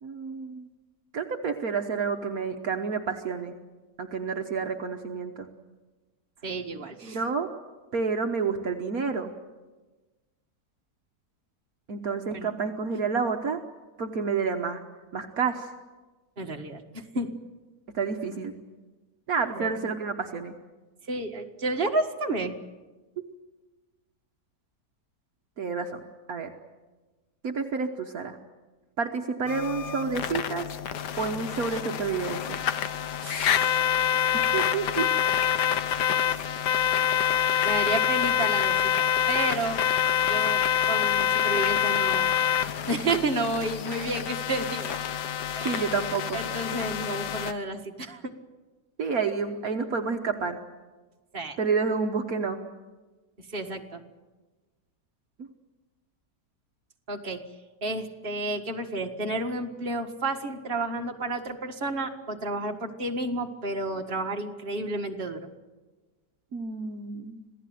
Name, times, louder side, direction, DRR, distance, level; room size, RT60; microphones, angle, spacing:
voice 1, 0.0-0.7 1.1-3.5 4.0-5.5 7.0-7.5 7.9-9.3 11.9-13.6 14.0-14.8 15.1-15.7 17.9-18.5 19.3-20.5 25.6-26.0 26.3-26.5 27.4-28.4 29.0-30.7 31.2-32.6 34.3-35.1 45.6-46.4 49.0-50.6 51.6-52.6 55.4-55.5 66.5-67.4, right 5 dB, 60° right, 4 dB, 1.6 m, -29 dB
voice 2, 6.4-7.2 12.3-12.5 12.9-13.0 16.4-17.3 19.5-19.7 21.1-22.6 33.2-33.8 37.6-39.8 40.2-40.6 40.9-42.4 42.9-45.0 45.5-45.9 46.3-48.3 51.3-51.6 53.4-54.0 57.1-57.4 57.8-65.5, right 2 dB, 35° right, 3 dB, 1.9 m, -31 dB
sound 1, 29.5-47.5, left 9 dB, 75° left, 1.5 m, -26 dB
26.5 x 17.5 x 9.3 m, 1.2 s
omnidirectional pair, 1.8 m